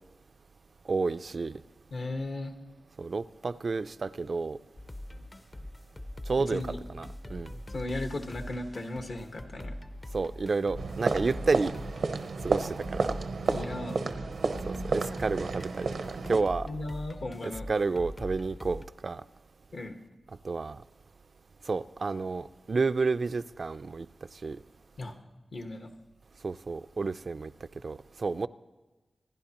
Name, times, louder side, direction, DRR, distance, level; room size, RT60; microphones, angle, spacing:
voice 1, 0.9-1.6 3.0-4.6 6.3-6.6 6.9-7.6 10.1-11.7 12.4-13.2 14.7-15.9 16.3-16.7 17.7-19.2 20.4-20.8 21.7-24.1 24.4-24.6 26.4-27.5 27.8-28.5, right 4 dB, 55° right, 13 dB, 0.3 m, -30 dB
voice 2, 1.9-2.6 6.5-6.8 7.7-9.7 13.5-14.1 16.7-17.7 19.7-19.9 25.0-25.1 25.5-25.9, left 2 dB, 65° left, 5 dB, 1.3 m, -36 dB
sound 1, 4.8-18.8, left 1 dB, 30° left, 0.6 m, -42 dB
sound 2, 10.8-16.4, right 4 dB, 90° right, 0.7 m, -32 dB
27.0 x 10.5 x 2.9 m, 1.3 s
wide cardioid pair, 75°, 0 cm